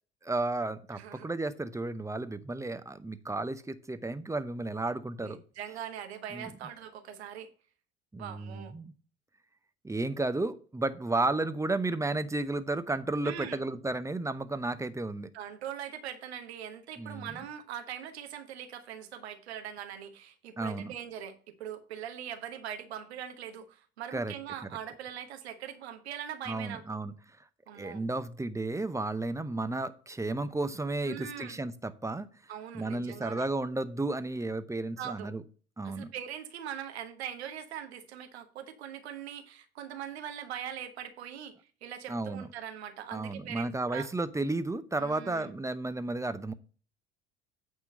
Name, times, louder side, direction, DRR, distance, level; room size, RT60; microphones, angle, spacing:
voice 1, 0.2-5.4 6.3-6.5 8.1-8.9 9.8-15.3 17.0-17.5 20.6-20.9 24.1-24.3 26.5-27.1 27.7-32.3 32.7-35.4 35.8-36.1 42.1-42.5 43.1-46.5, right 2 dB, 10° right, 0.8 m, -33 dB
voice 2, 0.9-1.3 5.2-7.5 8.2-8.8 13.2-13.6 15.3-27.0 27.7-28.0 31.0-31.6 32.5-33.5 35.0-35.3 35.8-41.5 41.8-44.1 45.0-45.5, right 9 dB, 80° right, 1.3 m, -41 dB
8.8 x 3.8 x 6.2 m
hypercardioid pair, 65°, 32 cm